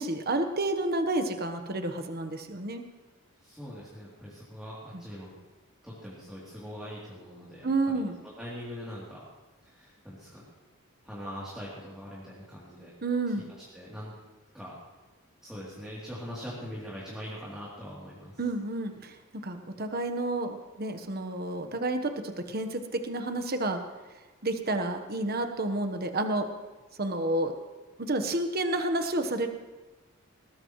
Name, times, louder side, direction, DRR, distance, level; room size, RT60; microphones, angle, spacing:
voice 1, 0.0-2.8 7.6-8.2 13.0-13.5 18.4-23.8 24.4-26.5 27.0-27.5 28.0-29.5, right 2 dB, 45° right, 6 dB, 1.2 m, -30 dB
voice 2, 3.4-5.3 5.8-9.2 9.6-10.4 11.0-12.9 13.4-14.2 14.5-14.8 15.4-18.4, equal, 5° right, -8 dB, 3.1 m, -42 dB
20.5 x 19.0 x 3.2 m, 1.2 s
head